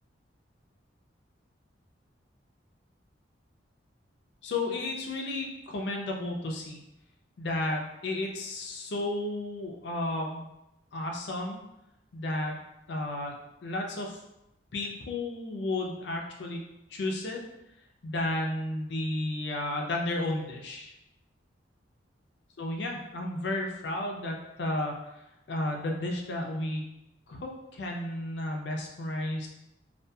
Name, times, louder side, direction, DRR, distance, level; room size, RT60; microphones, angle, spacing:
voice 1, 4.4-6.8 7.4-10.5 10.9-11.6 12.1-12.6 12.9-13.3 13.6-14.2 14.7-16.6 16.9-17.4 18.0-20.9 22.6-24.9 25.5-26.8 27.3-29.5, left 1 dB, 65° left, 1 dB, 0.4 m, -32 dB
2.6 x 2.3 x 2.2 m, 0.88 s
head